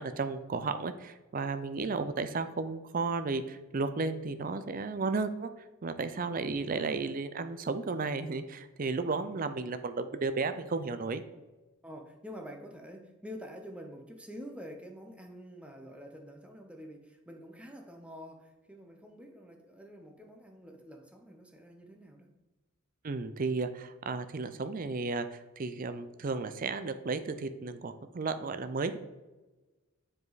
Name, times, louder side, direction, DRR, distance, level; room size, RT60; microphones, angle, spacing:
voice 1, 0.0-5.5 5.8-11.2 23.0-29.0, right 4 dB, 40° right, 10 dB, 0.5 m, -33 dB
voice 2, 11.8-22.3, equal, 5° right, 3 dB, 0.7 m, -47 dB
7.4 x 5.0 x 4.0 m, 1.1 s
head